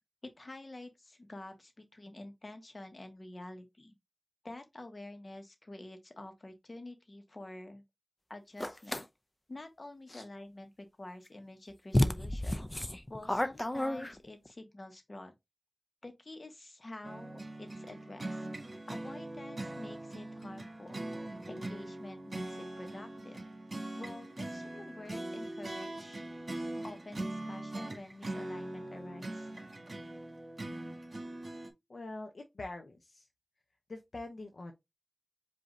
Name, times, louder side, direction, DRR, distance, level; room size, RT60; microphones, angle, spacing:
voice 1, 0.4-3.9 4.4-7.8 8.3-9.0 9.5-12.7 13.1-15.3 16.0-18.5 18.9-21.0 21.5-23.4 23.9-26.2 26.8-29.5, left 2 dB, 50° left, 1.2 m, -48 dB
sound 1, 8.6-9.0 11.3-11.4 11.9-14.5, left 1 dB, 25° left, 0.5 m, -31 dB
sound 2, 17.0-31.7, right 1 dB, 55° right, 1.6 m, -41 dB
voice 2, 31.9-33.3 33.9-34.7, left 2 dB, 80° left, 0.7 m, -44 dB
5.1 x 2.7 x 3.8 m
wide cardioid pair, 50°, 0 cm